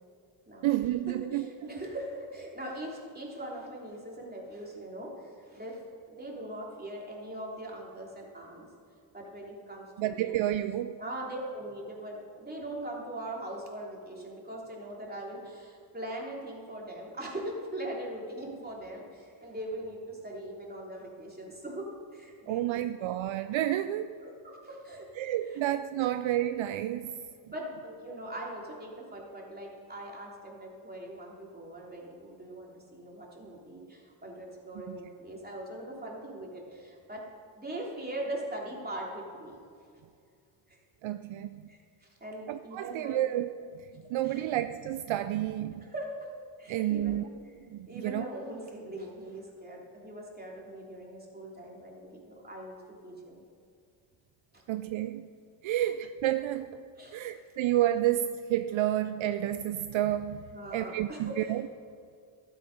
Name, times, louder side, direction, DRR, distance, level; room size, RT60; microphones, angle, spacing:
voice 1, 0.6-1.5 10.0-11.0 22.5-24.2 25.2-27.2 34.9-35.0 41.0-41.7 42.5-45.9 46.7-47.2 47.6-48.3 54.7-55.3 55.6-56.8 57.1-60.5 60.7-61.6, right 13 dB, 70° right, 11 dB, 0.5 m, -30 dB
voice 2, 1.2-5.8 6.1-8.7 9.1-10.4 11.0-21.8 22.1-22.8 24.2-25.1 25.5-25.6 27.5-37.2 37.6-39.6 40.7-40.8 41.7-43.2 44.2-44.5 45.8-46.3 46.6-47.2 47.9-52.8 53.0-53.4 54.5-54.6 57.0-57.2 60.5-61.4, right 1 dB, 20° right, -3 dB, 3.3 m, -41 dB
12.0 x 8.2 x 5.3 m, 2.3 s
cardioid pair, 60°, 49 cm